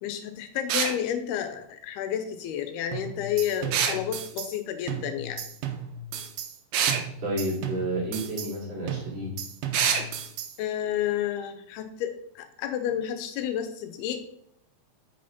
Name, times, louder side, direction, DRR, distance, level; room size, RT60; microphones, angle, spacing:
voice 1, 0.0-5.4 10.6-14.2, left 10 dB, 85° left, 8 dB, 2.7 m, -31 dB
sound 1, 0.7-1.0 3.7-4.0 6.7-7.0 9.7-10.1, right 7 dB, 70° right, 2.1 m, -24 dB
sound 2, 2.9-4.6 4.9-6.6 6.9-8.6 8.9-10.6, right 7 dB, 90° right, 2.8 m, -36 dB
voice 2, 7.2-9.3, right 1 dB, 45° right, -5 dB, 3.8 m, -31 dB
8.6 x 6.3 x 4.2 m, 0.69 s
omnidirectional pair, 4.5 m